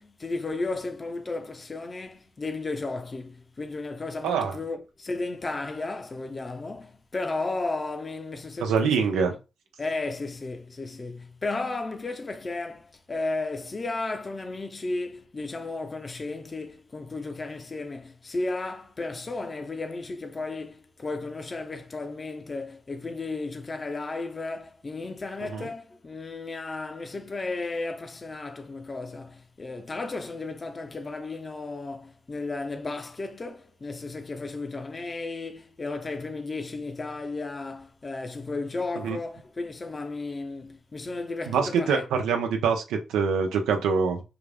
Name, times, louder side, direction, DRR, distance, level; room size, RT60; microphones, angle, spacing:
voice 1, 0.0-9.2 9.8-42.3, left 3 dB, 40° left, 0.9 m, -34 dB
voice 2, 4.2-4.6 8.6-9.4 25.5-25.7 39.0-39.2 41.5-44.2, right 6 dB, 85° right, 0.9 m, -25 dB
5.9 x 2.5 x 3.4 m
supercardioid pair, 45°, 0 cm